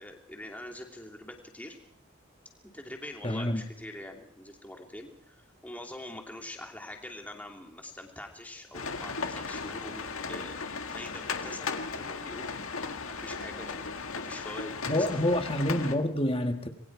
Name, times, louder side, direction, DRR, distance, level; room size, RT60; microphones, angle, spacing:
voice 1, 0.0-1.8 2.7-10.6 10.9-15.5, left 1 dB, 5° left, 2 dB, 2.9 m, -44 dB
voice 2, 3.2-3.6 14.9-16.7, left 1 dB, 25° left, 6 dB, 1.5 m, -27 dB
sound 1, 8.7-15.9, left 4 dB, 70° left, 1.8 m, -36 dB
27.0 x 22.0 x 4.8 m, 0.70 s
head